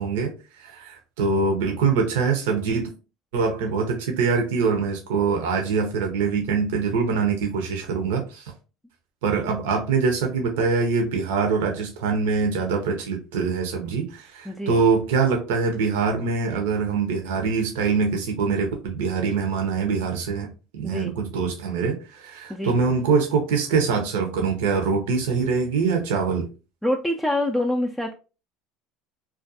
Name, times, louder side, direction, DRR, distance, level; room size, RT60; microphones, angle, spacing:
voice 1, 0.0-2.9 3.3-8.5 9.2-26.5, right 5 dB, 85° right, 3 dB, 0.6 m, -24 dB
voice 2, 14.5-14.8 20.8-21.1 22.5-22.7 26.8-28.1, left 1 dB, 5° left, 2 dB, 0.3 m, -25 dB
2.4 x 2.2 x 2.6 m, 0.33 s
supercardioid pair, 100°, 0 cm